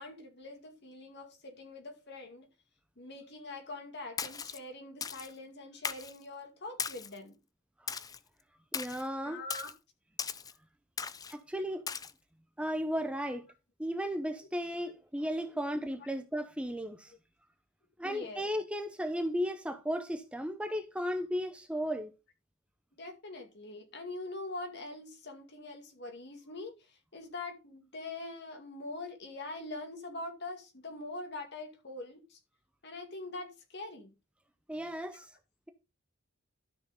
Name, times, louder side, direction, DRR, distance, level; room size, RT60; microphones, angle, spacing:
voice 1, 0.0-2.5 3.0-7.4 9.2-9.7 14.4-14.5 16.0-16.1 18.0-18.4 23.0-32.4 32.8-34.1 35.1-35.2, left 2 dB, 55° left, 2.2 m, -43 dB
Splash splatter, 4.2-4.6 5.0-5.3 5.8-6.2 6.8-7.2 7.9-8.2 8.7-9.0 9.5-9.7 10.2-10.5 11.0-11.3 11.9-12.1, left 6 dB, 20° left, 0.4 m, -38 dB
voice 2, 8.7-9.4 11.3-11.8 12.6-13.5 13.8-17.1 18.0-22.1 34.7-35.3, equal, 5° right, 0.8 m, -35 dB
12.5 x 6.4 x 3.8 m
head